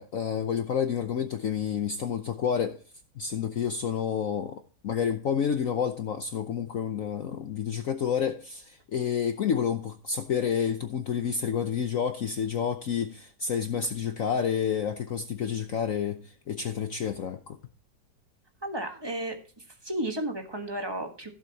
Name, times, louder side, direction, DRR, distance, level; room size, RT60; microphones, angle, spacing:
voice 1, 0.0-2.8 3.2-17.6, left 7 dB, 60° left, 1.0 m, -29 dB
voice 2, 18.6-21.3, right 1 dB, 15° right, 1.3 m, -33 dB
15.0 x 7.4 x 2.9 m
omnidirectional pair, 2.0 m